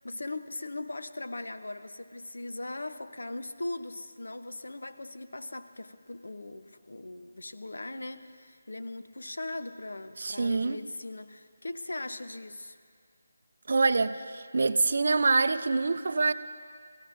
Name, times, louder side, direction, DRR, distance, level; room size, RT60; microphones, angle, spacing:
voice 1, 0.0-12.8, left 2 dB, 85° left, 9 dB, 0.7 m, -39 dB
voice 2, 10.2-10.8 13.7-16.3, right 3 dB, 50° right, 12 dB, 0.4 m, -25 dB
26.5 x 16.5 x 2.6 m, 2.1 s
figure-of-eight pair, 175°, 0 cm